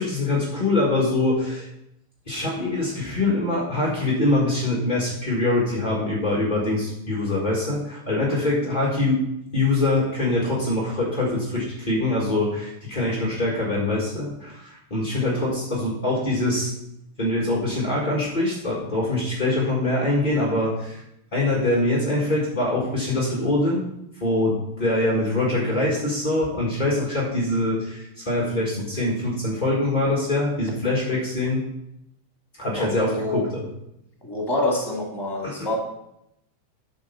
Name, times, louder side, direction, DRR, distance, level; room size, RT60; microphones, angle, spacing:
voice 1, 0.0-1.7 2.3-9.3 9.5-16.7 17.2-21.0 21.3-23.8 24.1-31.7 32.6-33.7 35.4-35.7, left 2 dB, 25° left, -5 dB, 1.0 m, -24 dB
voice 2, 32.7-33.4 34.2-35.7, left 2 dB, 10° left, -2 dB, 1.9 m, -26 dB
8.6 x 5.7 x 5.6 m, 0.82 s
omnidirectional pair, 3.5 m